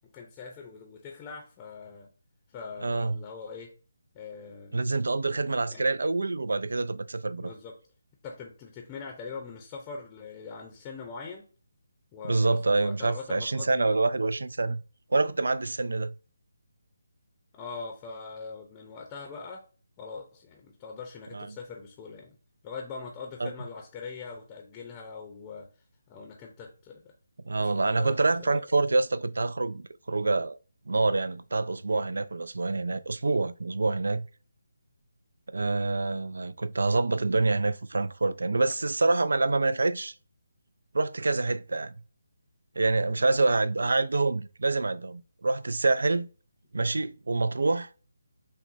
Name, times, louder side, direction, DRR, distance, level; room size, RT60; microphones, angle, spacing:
voice 1, 0.1-2.1 2.5-3.7 4.1-4.9 5.7-5.8 7.4-7.8 8.2-11.4 12.1-13.9 17.5-19.6 20.0-22.3 22.6-25.7 26.1-27.1 27.6-28.2 28.5-28.6, left 5 dB, 20° left, 0.6 m, -42 dB
voice 2, 2.8-3.2 4.7-7.5 12.3-14.8 15.1-16.1 21.3-21.6 23.4-23.5 27.5-30.6 30.9-34.3 35.5-40.1 40.9-41.9 42.8-46.3 46.7-47.9, right 3 dB, 75° right, 0.3 m, -26 dB
6.1 x 2.2 x 2.6 m
figure-of-eight pair, 160°, 0 cm